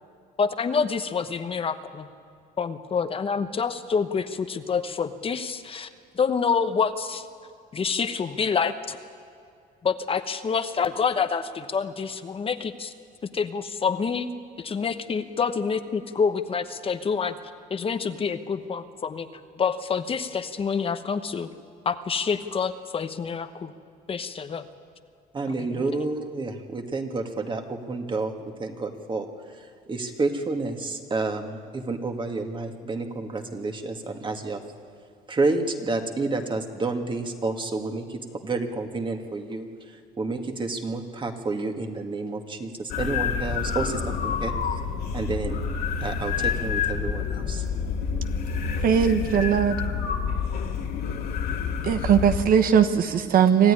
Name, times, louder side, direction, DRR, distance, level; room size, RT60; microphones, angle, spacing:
voice 1, 0.4-2.1 2.6-5.9 6.1-7.3 7.7-9.0 9.8-12.9 13.3-14.3 14.6-17.3 17.7-19.3 19.6-21.5 21.8-23.7 24.1-24.6 25.6-25.9, left 6 dB, 35° left, 9 dB, 1.0 m, -27 dB
voice 2, 25.3-28.3 28.6-29.3 29.9-34.6 35.3-39.7 40.2-44.5 45.1-45.6 46.0-47.6, right 3 dB, 30° right, 5 dB, 2.0 m, -29 dB
sound 1, 42.9-52.4, left 6 dB, 70° left, 2.3 m, -28 dB
voice 3, 48.8-49.8 51.8-53.7, right 8 dB, 60° right, 8 dB, 1.3 m, -19 dB
25.5 x 14.5 x 9.9 m, 2.4 s
cardioid pair, 110°, 17 cm